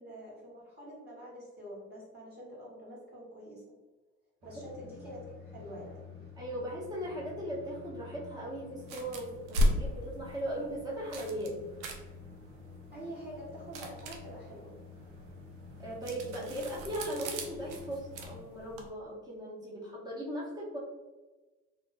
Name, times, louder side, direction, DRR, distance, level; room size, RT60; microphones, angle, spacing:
voice 1, 0.0-3.6 4.4-5.9 12.9-14.7, equal, 30° right, -7 dB, 1.5 m, -46 dB
sound 1, 4.4-18.4, left 5 dB, 70° right, 1.2 m, -50 dB
voice 2, 6.4-11.6 15.8-20.8, right 1 dB, 10° right, -5 dB, 1.1 m, -38 dB
sound 2, 8.8-18.9, left 1 dB, 85° right, 0.5 m, -37 dB
2.8 x 2.2 x 3.2 m, 1.2 s
hypercardioid pair, 60°, 34 cm